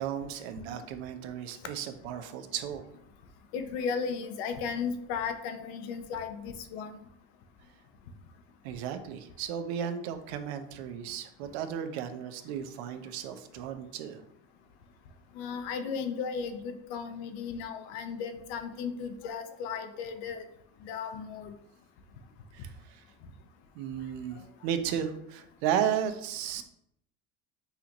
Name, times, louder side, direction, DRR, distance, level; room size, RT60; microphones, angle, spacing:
voice 1, 0.0-2.8 8.6-14.2 22.5-23.0 23.7-26.6, right 9 dB, 80° right, 8 dB, 0.6 m, -34 dB
voice 2, 3.5-7.0 15.3-20.4 20.8-21.5, left 6 dB, 80° left, 8 dB, 0.7 m, -35 dB
5.6 x 2.5 x 2.9 m, 0.77 s
supercardioid pair, 125°, 32 cm